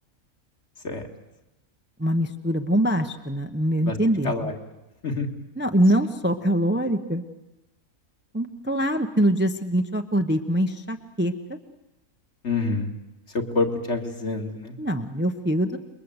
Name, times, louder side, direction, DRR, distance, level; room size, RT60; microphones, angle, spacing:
voice 1, 2.0-4.5 5.6-7.2 8.3-11.6 14.8-15.8, right 1 dB, 10° right, 6 dB, 0.9 m, -24 dB
voice 2, 12.4-12.9 13.3-14.8, left 3 dB, 50° left, 3 dB, 2.5 m, -27 dB
28.0 x 22.0 x 8.1 m, 0.96 s
omnidirectional pair, 1.5 m